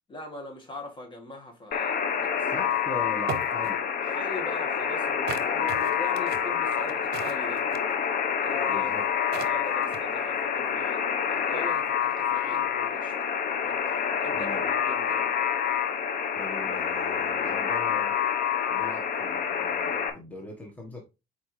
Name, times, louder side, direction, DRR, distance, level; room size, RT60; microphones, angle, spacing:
voice 1, 0.1-2.5 4.0-7.6 8.4-8.9 9.4-13.3 13.6-15.3, left 2 dB, 30° left, 1.9 m, -41 dB
Alarm, 1.7-20.1, left 7 dB, 60° left, 1.0 m, -27 dB
voice 2, 2.5-3.8 8.7-9.1 14.3-14.7 16.4-18.2 18.7-21.0, left 1 dB, 10° left, 1.4 m, -40 dB
sound 1, 2.7-2.8 3.3-3.7 5.3-7.9 8.9-9.0 9.3-10.1, right 11 dB, 70° right, 0.7 m, -37 dB
7.1 x 4.5 x 3.2 m
cardioid pair, 110°, 17 cm